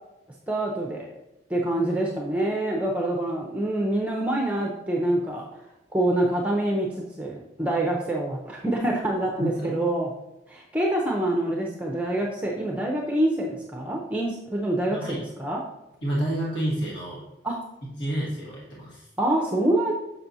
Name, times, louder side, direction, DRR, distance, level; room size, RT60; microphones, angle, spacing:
voice 1, 0.5-1.1 1.5-5.4 5.9-10.1 10.5-15.6 17.4-17.6 19.2-19.9, right 1 dB, 10° right, -1 dB, 0.5 m, -26 dB
voice 2, 9.4-9.7 14.9-15.2 16.0-17.2 18.0-19.1, right 1 dB, 85° left, -5 dB, 1.6 m, -29 dB
6.7 x 5.8 x 2.7 m, 0.94 s
head